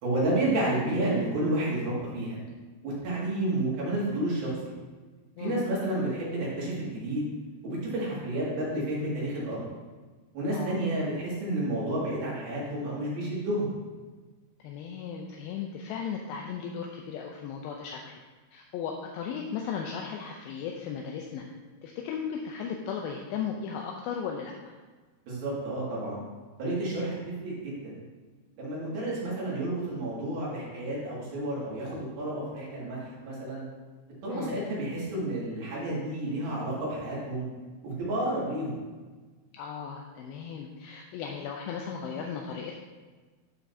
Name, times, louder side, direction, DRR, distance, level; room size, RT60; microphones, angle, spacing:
voice 1, 0.0-2.4 2.8-4.7 5.4-7.3 7.6-9.7 10.3-13.7 25.3-26.2 26.6-27.2 27.4-28.0 28.6-33.7 34.2-37.5 37.8-38.8, right 1 dB, 70° right, -6 dB, 3.9 m, -30 dB
voice 2, 10.5-10.8 14.6-18.1 18.5-21.4 21.8-24.5 34.3-34.6 39.5-42.8, left 7 dB, 80° left, 1 dB, 2.3 m, -36 dB
11.0 x 5.8 x 2.7 m, 1.3 s
omnidirectional pair, 4.6 m